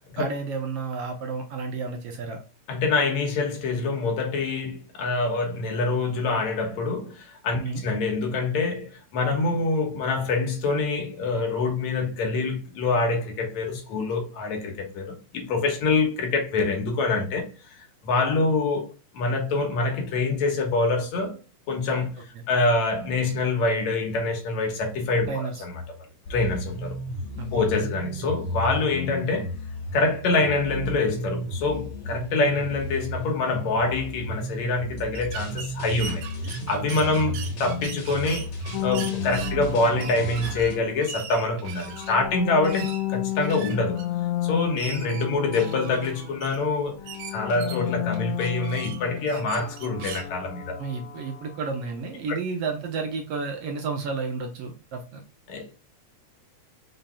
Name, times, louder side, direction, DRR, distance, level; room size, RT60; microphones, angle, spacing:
voice 1, 0.2-2.4 7.6-7.8 25.3-25.6 27.4-27.5 37.4-37.5 50.8-55.2, right 4 dB, 65° right, 1.7 m, -31 dB
voice 2, 2.7-21.4 21.7-25.8 26.3-27.0 27.5-29.5 29.9-37.3 37.6-38.5 38.8-44.0 44.4-47.0 47.3-50.8 55.5-55.7, left 3 dB, 70° left, 2.5 m, -25 dB
sound 1, 26.3-40.8, equal, 50° left, 2.5 m, -34 dB
sound 2, 35.1-50.3, right 8 dB, 85° right, 2.2 m, -41 dB
sound 3, 38.7-41.2 41.8-46.7 46.9-51.9, left 12 dB, 85° left, 1.3 m, -32 dB
5.9 x 3.9 x 2.3 m
omnidirectional pair, 3.4 m